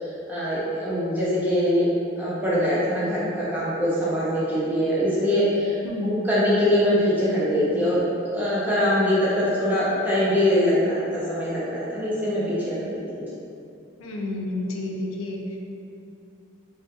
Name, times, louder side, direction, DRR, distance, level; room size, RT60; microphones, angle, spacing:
voice 1, 0.3-1.9 2.2-5.8 6.0-8.0 8.3-13.2, left 1 dB, 10° right, -9 dB, 0.4 m, -23 dB
voice 2, 5.8-6.2 14.0-15.4, left 2 dB, 85° left, -1 dB, 0.3 m, -30 dB
2.6 x 2.1 x 2.3 m, 2.6 s
head